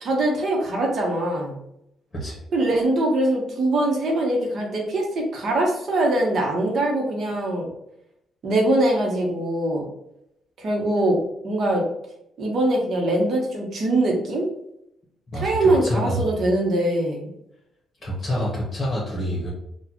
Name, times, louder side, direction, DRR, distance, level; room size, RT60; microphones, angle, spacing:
voice 1, 0.0-1.5 2.5-7.7 8.4-9.8 10.6-11.2 11.4-11.8 12.4-14.5 15.3-17.3, right 1 dB, 60° right, 0 dB, 1.0 m, -22 dB
voice 2, 15.3-16.3 18.0-19.5, equal, 25° left, -5 dB, 1.4 m, -27 dB
4.0 x 2.4 x 2.9 m, 0.79 s
cardioid pair, 90°, 0 cm